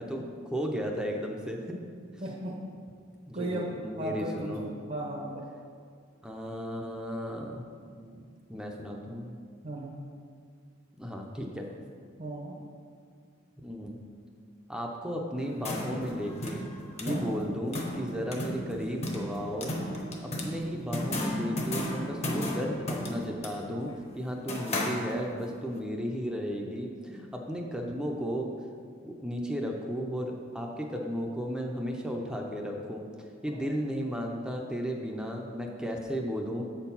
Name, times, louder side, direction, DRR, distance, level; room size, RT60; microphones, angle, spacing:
voice 1, 0.0-1.8 3.3-4.6 6.2-8.2 8.5-9.4 11.0-11.7 13.6-14.0 14.7-16.7 17.0-19.7 20.2-28.5 29.0-33.1 33.4-36.7, equal, 5° right, 1 dB, 0.6 m, -34 dB
voice 2, 2.2-2.6 3.3-3.7 4.0-5.5 9.6-10.0 12.2-12.6 17.0-17.4 33.5-33.8, right 1 dB, 40° right, -2 dB, 0.8 m, -36 dB
sound 1, 15.4-25.5, left 1 dB, 35° left, 1.0 m, -35 dB
7.5 x 4.5 x 5.5 m, 2.1 s
head